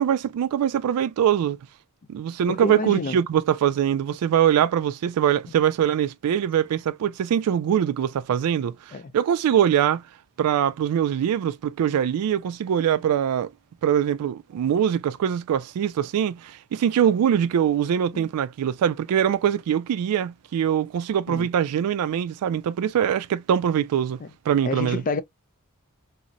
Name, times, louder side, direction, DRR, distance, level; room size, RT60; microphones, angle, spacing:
voice 1, 0.0-1.6 2.1-10.0 10.4-13.5 13.8-24.2 24.5-25.0, right 9 dB, 85° right, 0.3 m, -23 dB
voice 2, 2.5-3.2 8.9-9.2 18.1-18.3 21.3-21.5 24.2-24.3 24.6-25.2, left 3 dB, 35° left, 0.4 m, -29 dB
2.8 x 2.0 x 2.4 m
head